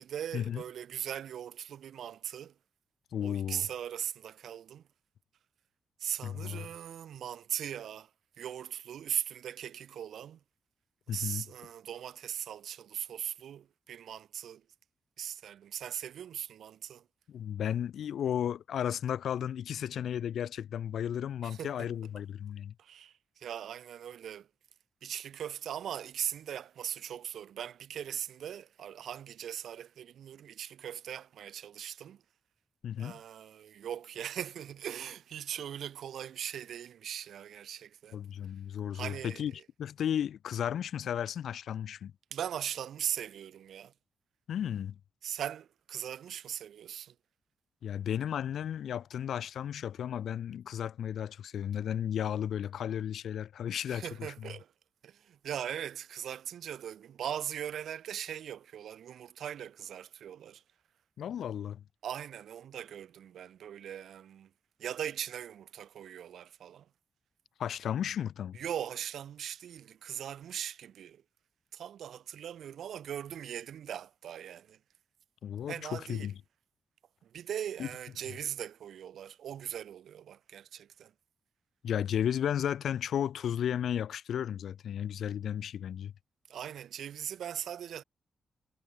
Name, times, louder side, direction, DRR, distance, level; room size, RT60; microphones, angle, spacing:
voice 1, 0.0-2.6 3.2-4.8 6.0-8.1 8.4-10.4 11.1-14.6 15.2-17.1 21.4-21.9 22.8-24.5 25.0-32.2 33.0-38.2 38.9-39.6 42.3-43.9 45.2-47.2 53.9-54.7 55.0-60.6 62.0-64.5 64.8-66.9 68.5-71.2 71.7-74.8 75.7-76.3 77.2-81.1 86.5-88.0, right 9 dB, 80° right, 1.7 m, -40 dB
voice 2, 3.1-3.7 6.2-6.7 11.1-11.4 17.3-22.7 32.8-33.2 38.1-39.5 39.8-42.1 44.5-45.0 47.8-54.5 61.2-61.8 67.6-68.6 75.4-76.3 77.8-77.9 81.8-86.1, left 9 dB, 75° left, 2.7 m, -34 dB
cardioid pair, 125°, 0 cm